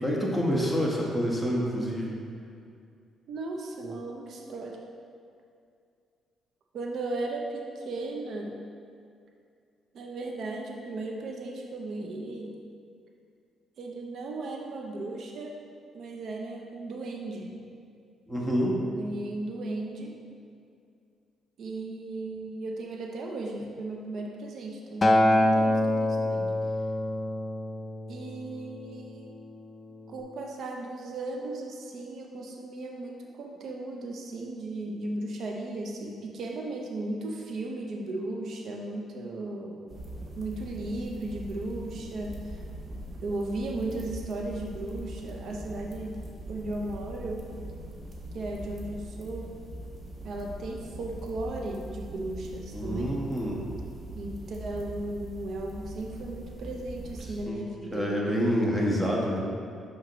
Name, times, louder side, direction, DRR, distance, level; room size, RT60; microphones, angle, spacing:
voice 1, 0.0-2.1 18.3-18.8 52.7-53.6 57.2-57.6 57.9-59.4, equal, 5° right, -3 dB, 1.2 m, -27 dB
voice 2, 3.3-4.8 6.7-8.6 9.9-12.5 13.8-15.6 15.9-17.6 18.8-20.2 21.6-26.6 28.1-29.3 30.1-39.8 40.4-42.6 43.2-46.2 46.5-47.5 48.3-49.5 50.2-53.2 54.2-58.1, right 2 dB, 65° right, 0 dB, 0.6 m, -36 dB
Acoustic guitar, 25.0-29.3 30.1-30.2, left 1 dB, 30° left, 0.4 m, -26 dB
sound 1, 39.9-57.4, right 1 dB, 45° right, 1.0 m, -41 dB
5.7 x 5.7 x 3.0 m, 2.4 s
cardioid pair, 90°, 0 cm